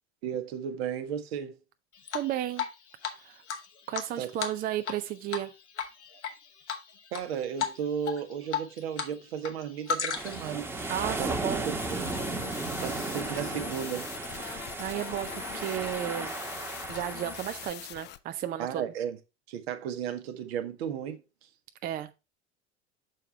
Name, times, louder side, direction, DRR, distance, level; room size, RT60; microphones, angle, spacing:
voice 1, 0.2-1.5 4.2-4.3 7.1-10.6 11.2-11.3 11.7-12.1 12.8-14.1 18.6-19.2 19.5-21.2, right 8 dB, 60° right, 1.1 m, -34 dB
Drip, 2.1-2.7 3.0-3.1 3.5-5.0 5.3-5.5 5.8-6.3 6.7-7.2 7.6-7.8 8.1-9.1 9.4-10.5, left 7 dB, 75° left, 1.1 m, -33 dB
voice 2, 2.1-2.7 3.2-3.4 3.9-5.5 10.9-11.7 14.5-16.4 16.9-18.8 21.8-22.1, right 12 dB, 25° right, 0.4 m, -33 dB
sound 1, 10.1-17.7, right 2 dB, 5° right, 1.1 m, -35 dB
sound 2, 11.8-18.2, left 13 dB, 30° left, 0.5 m, -43 dB
6.9 x 4.6 x 3.2 m
figure-of-eight pair, 75°, 34 cm